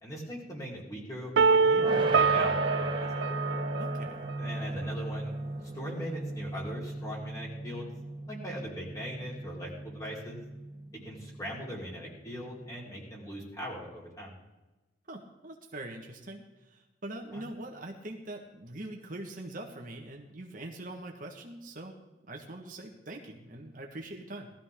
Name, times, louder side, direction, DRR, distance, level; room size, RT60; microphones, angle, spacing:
voice 1, 0.0-3.3 4.4-5.3 5.7-7.9 8.3-10.4 11.0-14.4 17.3-17.4, equal, 20° left, -5 dB, 4.6 m, -40 dB
sound 1, 1.4-4.3, right 4 dB, 90° right, 0.4 m, -25 dB
sound 2, 1.8-12.8, right 1 dB, 30° right, 1.4 m, -37 dB
voice 2, 3.8-4.3 15.1-21.9 22.3-24.5, right 1 dB, 50° right, 2 dB, 1.6 m, -43 dB
19.0 x 13.0 x 3.8 m, 1.1 s
head